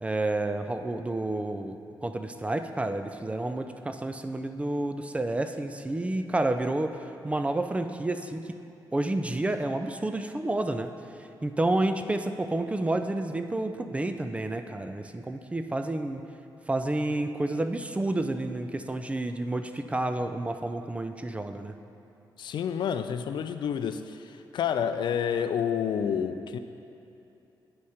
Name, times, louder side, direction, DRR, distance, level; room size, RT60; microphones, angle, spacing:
voice 1, 0.0-7.0 7.2-8.4 8.9-10.9 11.4-16.2 16.7-21.7, right 2 dB, 15° right, 7 dB, 0.4 m, -30 dB
voice 2, 22.4-26.6, left 8 dB, 70° left, 10 dB, 0.3 m, -29 dB
9.5 x 4.3 x 4.9 m, 2.8 s
cardioid pair, 105°, 8 cm